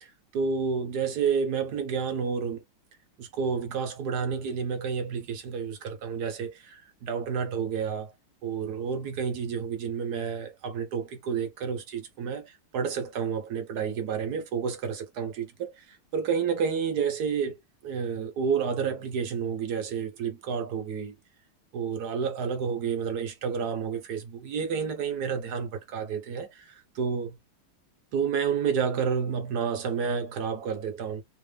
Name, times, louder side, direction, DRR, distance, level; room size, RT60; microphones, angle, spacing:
voice 1, 0.0-2.6 3.2-8.1 8.4-21.2 21.7-27.4 28.1-31.2, right 6 dB, 60° right, 1.2 m, -30 dB
3.4 x 2.5 x 3.3 m
omnidirectional pair, 2.3 m